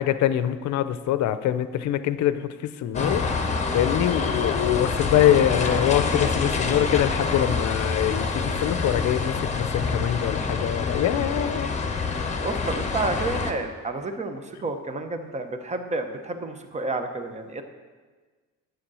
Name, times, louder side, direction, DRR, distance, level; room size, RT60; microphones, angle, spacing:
voice 1, 0.0-3.4 3.7-11.7, left 11 dB, 60° left, 13 dB, 0.7 m, -24 dB
sound 1, 2.9-13.5, left 4 dB, 20° left, 1.0 m, -26 dB
voice 2, 12.4-17.6, right 3 dB, 20° right, 7 dB, 0.9 m, -30 dB
10.0 x 7.8 x 6.2 m, 1.4 s
cardioid pair, 125°, 32 cm